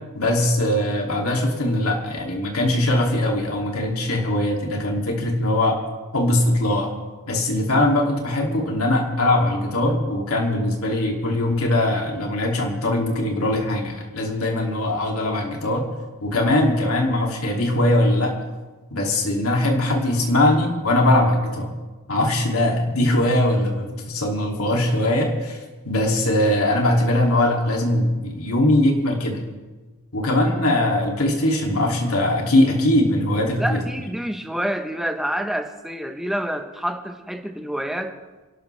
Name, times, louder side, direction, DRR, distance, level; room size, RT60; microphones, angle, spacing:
voice 1, 0.1-5.8 6.1-6.9 7.3-15.9 16.2-18.3 18.9-21.7 22.1-25.6 25.8-29.4 30.1-33.8, left 1 dB, 70° left, 1 dB, 2.8 m, -21 dB
voice 2, 33.6-38.1, equal, ahead, 5 dB, 1.0 m, -27 dB
27.5 x 12.0 x 3.4 m, 1.3 s
head